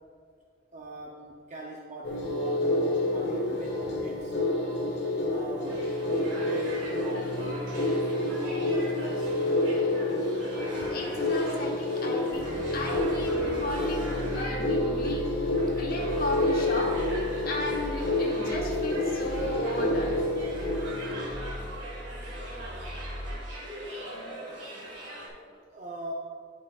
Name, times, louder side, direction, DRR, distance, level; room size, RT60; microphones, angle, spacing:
voice 1, 0.7-4.3 5.3-5.8 6.2-9.6 10.8-11.0 25.7-26.1, right 1 dB, 40° right, -2 dB, 0.5 m, -42 dB
sound 1, 2.0-21.5, left 1 dB, 85° left, 1.2 m, -29 dB
sound 2, 5.6-25.3, right 1 dB, 80° right, 1.6 m, -42 dB
voice 2, 10.9-15.2 15.8-16.9 17.4-20.1 23.9-24.5, left 1 dB, 50° left, -1 dB, 1.2 m, -35 dB
sound 3, 12.3-23.8, equal, 20° left, 1.7 m, -40 dB
10.5 x 5.4 x 2.4 m, 2.2 s
head